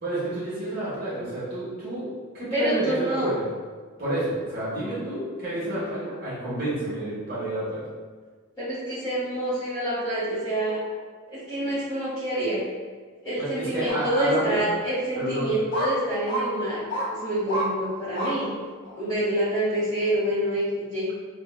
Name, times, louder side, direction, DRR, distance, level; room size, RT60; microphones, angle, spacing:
voice 1, 0.0-3.4 4.0-7.8 13.4-14.6 15.1-15.5, right 1 dB, 45° right, -11 dB, 1.1 m, -29 dB
voice 2, 2.5-3.3 8.6-10.8 11.3-12.6 13.2-16.8 17.1-18.5 18.9-21.1, right 1 dB, 15° left, -13 dB, 1.0 m, -27 dB
sound 1, 13.9-14.0 14.7-14.8 15.7-15.9 16.2-16.4 16.9-17.1 17.5-17.7 18.1-18.3 18.9-19.0, right 1 dB, 55° left, 0.8 m, -28 dB
4.6 x 2.2 x 2.4 m, 1.5 s
head